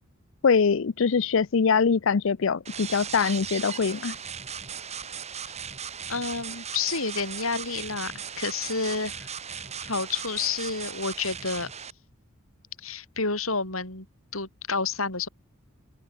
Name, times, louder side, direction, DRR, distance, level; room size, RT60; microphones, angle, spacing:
voice 1, 0.4-4.1, left 5 dB, 65° left, 0.5 m, -23 dB
sound 1, 2.7-11.9, right 7 dB, 30° right, 1.9 m, -37 dB
voice 2, 6.1-11.7 12.8-14.1 14.3-15.3, left 4 dB, 85° left, 7.9 m, -30 dB
open air
head